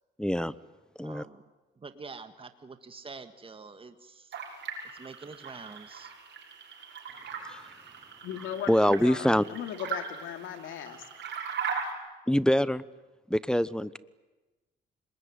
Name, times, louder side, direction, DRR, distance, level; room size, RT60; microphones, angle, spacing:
voice 1, 0.2-0.5 1.0-1.2 7.4-7.6 8.7-9.5 12.3-12.8 13.3-14.0, equal, 5° left, 17 dB, 0.9 m, -25 dB
voice 2, 1.0-1.4 1.8-4.4 4.9-6.1, right 4 dB, 25° right, 9 dB, 1.9 m, -46 dB
sound 1, 4.3-11.9, right 6 dB, 65° right, 6.4 m, -39 dB
voice 3, 8.2-11.0, left 9 dB, 85° left, 7 dB, 2.8 m, -38 dB
26.5 x 21.0 x 9.8 m, 1.1 s
cardioid pair, 90°, 20 cm